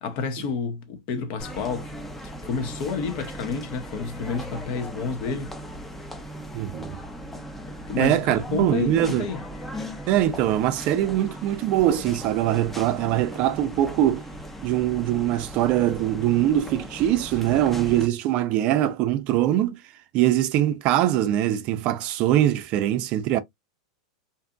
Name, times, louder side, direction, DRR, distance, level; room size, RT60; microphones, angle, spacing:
voice 1, 0.0-2.0 2.4-5.5 7.9-9.4, left 5 dB, 50° left, 0.8 m, -30 dB
sound 1, 1.4-18.1, equal, 5° left, 0.5 m, -38 dB
voice 2, 6.5-7.0 8.0-9.3 10.1-14.2 14.6-19.8 20.1-23.4, right 12 dB, 45° right, 0.4 m, -22 dB
2.6 x 2.4 x 2.4 m
hypercardioid pair, 125°, 3 cm